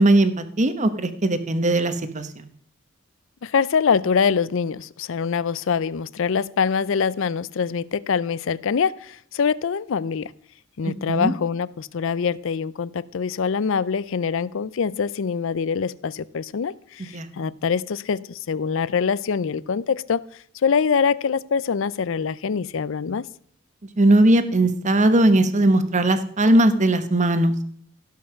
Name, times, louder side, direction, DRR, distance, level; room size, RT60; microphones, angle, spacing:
voice 1, 0.0-2.3 11.1-11.3 17.1-17.3 24.0-27.5, right 1 dB, 35° right, 1.0 m, -19 dB
voice 2, 3.4-10.3 10.8-20.2 20.6-23.3, left 6 dB, 65° left, 0.5 m, -24 dB
16.5 x 5.6 x 6.5 m
head